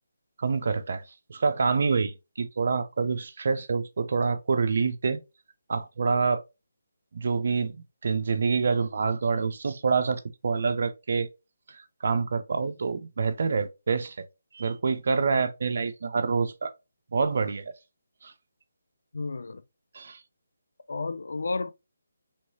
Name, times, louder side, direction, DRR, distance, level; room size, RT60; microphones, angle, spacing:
voice 1, 0.4-1.0 1.3-5.2 5.7-6.4 7.1-11.3 11.7-14.2 14.5-16.7 17.1-17.7 18.2-18.3 19.9-20.2, right 5 dB, 55° right, 0.5 m, -27 dB
voice 2, 19.1-19.6 20.9-21.7, left 3 dB, 70° left, 0.4 m, -31 dB
3.2 x 3.0 x 2.7 m
figure-of-eight pair, 155°, 0 cm